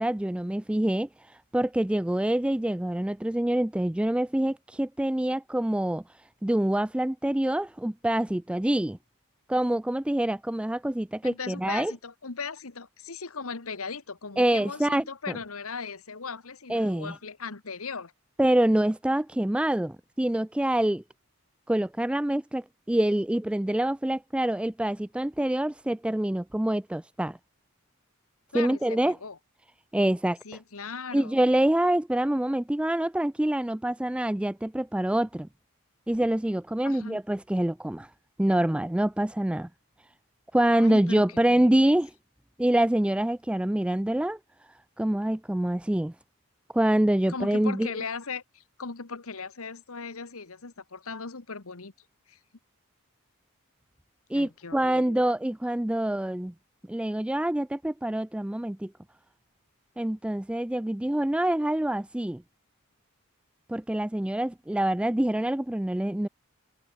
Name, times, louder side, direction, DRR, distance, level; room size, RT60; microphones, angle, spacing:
voice 1, 0.0-6.0 6.4-9.0 9.5-11.9 14.4-15.4 16.7-17.1 18.4-21.0 21.7-27.4 28.5-29.2 29.9-30.4 31.1-35.5 36.1-38.1 38.4-39.7 40.5-42.1 42.6-44.4 45.0-46.1 46.7-47.9 54.3-56.5 56.9-58.9 60.0-62.4 63.7-66.3, right 1 dB, 5° right, 0.3 m, -26 dB
voice 2, 11.2-18.1 28.5-29.4 30.4-31.4 36.8-37.2 40.6-42.0 47.3-51.9 52.3-52.4 54.3-55.2, left 4 dB, 65° left, 1.4 m, -38 dB
head